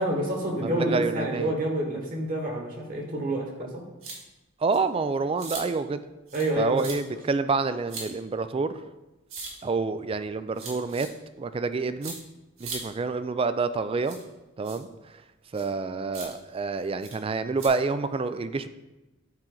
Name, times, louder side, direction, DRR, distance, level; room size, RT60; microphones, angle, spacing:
voice 1, 0.0-3.8 6.3-7.2, right 1 dB, 45° right, 1 dB, 1.4 m, -28 dB
voice 2, 0.6-1.6 4.6-6.0 6.6-8.8 9.6-11.1 11.4-12.1 12.6-14.2 14.6-14.9 15.5-18.7, right 4 dB, 25° right, 12 dB, 0.3 m, -28 dB
sound 1, 4.0-4.2 4.7-4.8 5.4-5.6 6.3-6.5 6.8-7.0 7.9-8.1 9.3-9.5 10.6-11.1 12.0-12.2 12.6-12.8 14.0-14.2 14.6-14.8 15.5-15.7 16.1-16.3 17.0-17.1 17.6-17.7, right 4 dB, 85° right, 1.8 m, -38 dB
8.7 x 4.5 x 3.8 m, 1.0 s
head